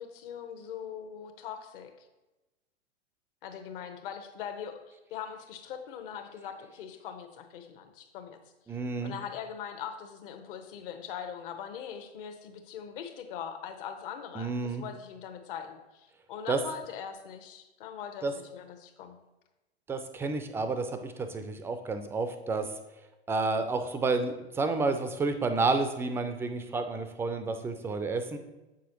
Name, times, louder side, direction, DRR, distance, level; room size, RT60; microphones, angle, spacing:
voice 1, 0.0-1.9 3.4-8.4 9.0-19.2, left 8 dB, 55° left, 7 dB, 1.0 m, -41 dB
voice 2, 8.7-9.1 14.4-14.8 16.5-16.6 18.2-18.3 19.9-22.6 23.3-28.4, right 3 dB, 10° right, 8 dB, 0.3 m, -30 dB
7.7 x 6.3 x 3.0 m, 1.0 s
hypercardioid pair, 100°, 33 cm